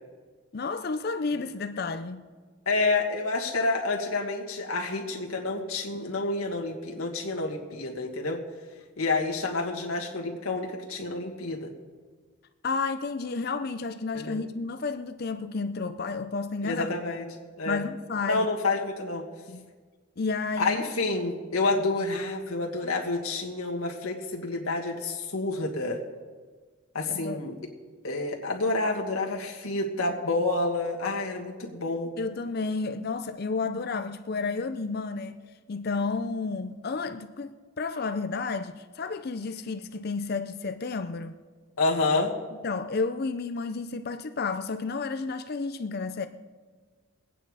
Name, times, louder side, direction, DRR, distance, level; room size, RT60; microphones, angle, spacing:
voice 1, 0.5-2.3 12.6-16.9 17.7-18.5 19.5-19.7 20.2-21.1 27.1-27.4 32.2-35.4 35.7-41.4 42.6-46.3, left 4 dB, 45° left, 0.5 m, -31 dB
voice 2, 2.6-8.4 9.0-11.7 14.1-14.4 16.6-17.2 17.6-17.8 18.2-19.3 20.6-26.0 26.9-27.5 28.0-32.1 41.8-42.3, left 3 dB, 80° left, 1.7 m, -28 dB
22.0 x 8.9 x 4.9 m
head